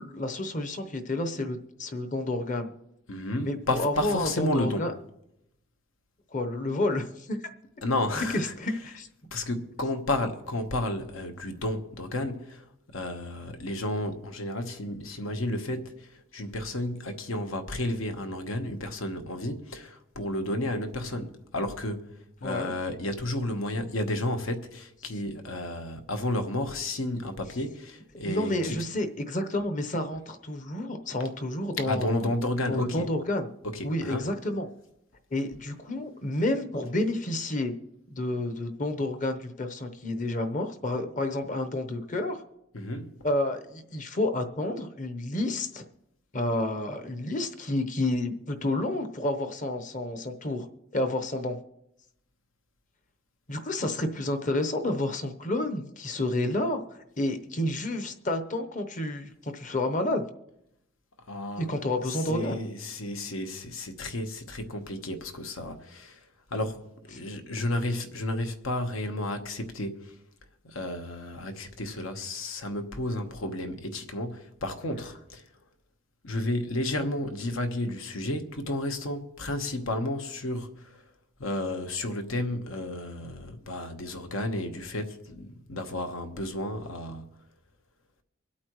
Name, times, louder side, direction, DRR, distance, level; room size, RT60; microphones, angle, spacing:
voice 1, 0.0-2.7 3.4-4.9 6.3-7.4 8.1-9.1 22.4-22.7 28.2-32.3 32.7-33.5 33.8-34.7 35.3-37.7 38.1-42.4 43.2-45.8 46.3-50.7 50.9-51.6 53.5-60.2 61.6-62.6, left 1 dB, 40° left, 0.9 m, -30 dB
voice 2, 3.1-4.9 7.8-8.5 9.3-12.6 12.9-22.1 22.4-28.8 31.8-33.1 33.6-34.3 42.7-43.3 61.3-61.7 62.1-66.2 66.5-66.8 67.1-70.1 70.6-75.4 76.2-80.7 81.4-87.2, left 1 dB, 85° left, 1.2 m, -32 dB
25.0 x 8.5 x 3.1 m
head